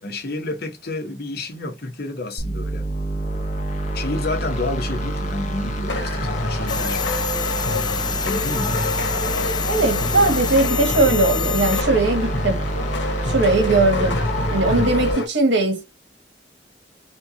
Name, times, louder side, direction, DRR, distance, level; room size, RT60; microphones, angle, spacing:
voice 1, 0.0-2.9 3.9-7.2 8.2-8.7 14.6-14.9, left 2 dB, 60° left, 1.2 m, -30 dB
sound 1, 2.4-15.1, right 1 dB, 40° left, 1.3 m, -27 dB
sound 2, 5.9-15.3, left 2 dB, 85° left, 1.4 m, -27 dB
sound 3, 6.7-11.8, left 6 dB, 25° left, 0.4 m, -27 dB
voice 2, 9.7-12.6 13.2-14.2 14.5-15.8, right 2 dB, 80° right, 1.9 m, -19 dB
4.4 x 2.5 x 2.8 m
head